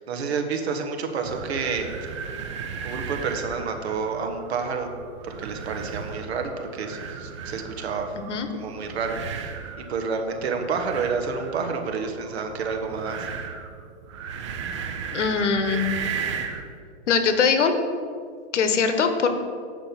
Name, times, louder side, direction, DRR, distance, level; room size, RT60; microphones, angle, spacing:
voice 1, 0.0-1.9 2.8-4.9 5.2-8.1 8.5-9.5 9.8-13.3, right 5 dB, 60° right, 5 dB, 1.3 m, -29 dB
sound 1, 1.2-16.7, right 6 dB, 25° right, 0.4 m, -36 dB
voice 2, 8.2-8.5 15.1-15.9 17.1-17.7 18.5-19.3, left 5 dB, 80° left, 8 dB, 1.1 m, -22 dB
8.6 x 5.2 x 5.8 m, 2.2 s
hypercardioid pair, 150°, 35 cm